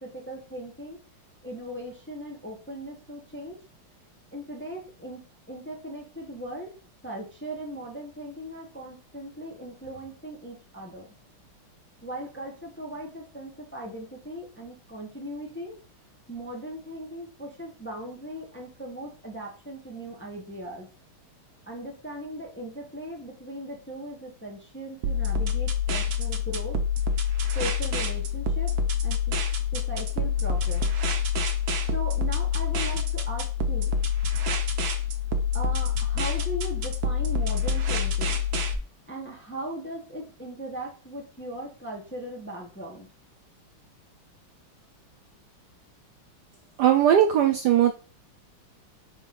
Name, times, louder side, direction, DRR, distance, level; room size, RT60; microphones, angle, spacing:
voice 1, 0.0-1.0 1.4-3.6 4.3-5.2 5.5-6.8 7.0-11.1 12.0-15.8 16.3-20.9 21.7-26.8 27.5-28.8 29.0-29.4 29.7-31.2 31.9-33.9 35.5-38.4 39.1-43.1, equal, 10° left, 0 dB, 0.6 m, -38 dB
sound 1, 25.0-38.7, left 5 dB, 60° right, 1.1 m, -26 dB
voice 2, 46.8-47.9, right 10 dB, 80° right, 7 dB, 0.9 m, -19 dB
5.1 x 3.7 x 5.2 m, 0.38 s
omnidirectional pair, 2.3 m